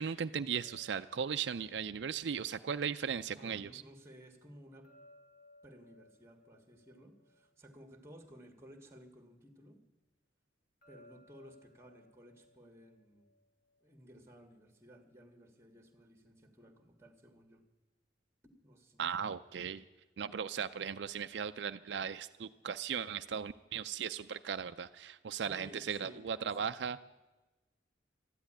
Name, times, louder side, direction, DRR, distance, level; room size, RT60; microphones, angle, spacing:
voice 1, 0.0-3.8 19.0-19.8 20.2-27.0, right 7 dB, 70° right, 10 dB, 0.4 m, -37 dB
sound 1, 0.5-3.6 4.8-8.4 10.8-13.9, left 1 dB, 55° left, 3.5 m, -64 dB
voice 2, 3.3-4.9 5.6-9.8 10.9-13.3 13.8-17.6 18.4-19.1 25.4-26.9, equal, 15° right, 5 dB, 1.6 m, -57 dB
13.5 x 10.5 x 9.9 m, 1.1 s
head